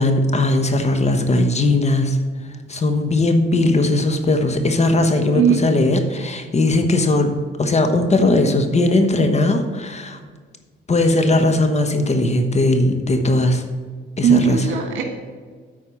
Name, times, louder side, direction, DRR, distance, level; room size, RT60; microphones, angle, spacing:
voice 1, 0.0-2.2 2.7-10.2 10.9-13.6 14.2-14.6, left 2 dB, 35° left, 7 dB, 1.1 m, -18 dB
voice 2, 14.2-15.0, right 7 dB, 70° right, 4 dB, 1.7 m, -17 dB
8.5 x 4.7 x 7.2 m, 1.5 s
cardioid pair, 90°, 20 cm